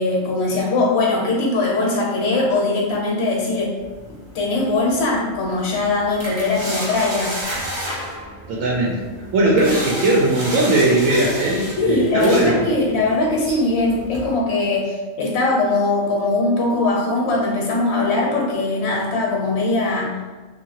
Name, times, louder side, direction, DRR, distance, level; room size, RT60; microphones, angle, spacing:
voice 1, 0.0-3.8 4.1-7.4 11.8-20.2, left 2 dB, 60° left, -2 dB, 1.0 m, -21 dB
sound 1, 3.8-14.3, equal, 40° right, 0.4 m, -32 dB
sound 2, 7.4-10.1, right 1 dB, 60° right, 0.9 m, -38 dB
voice 2, 8.5-9.0 9.3-12.6, right 2 dB, 85° right, -5 dB, 1.0 m, -18 dB
2.7 x 2.5 x 2.8 m, 1.3 s
omnidirectional pair, 1.3 m